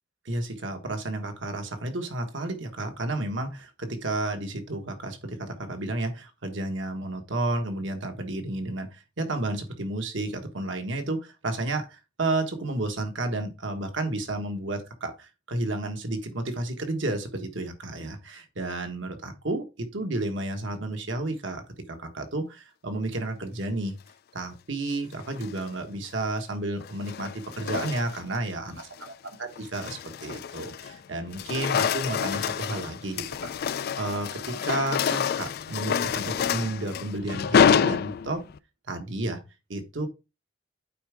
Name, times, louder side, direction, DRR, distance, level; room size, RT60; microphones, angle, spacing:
voice 1, 0.2-24.0 24.3-28.8 29.4-38.4 38.9-39.4 39.7-40.1, right 2 dB, 65° right, 6 dB, 1.4 m, -32 dB
sound 1, 25.2-25.7 26.8-28.4 28.8-29.1 29.6-31.0 31.3-38.6, left 7 dB, 50° left, 0.3 m, -27 dB
8.5 x 4.7 x 3.5 m, 0.27 s
head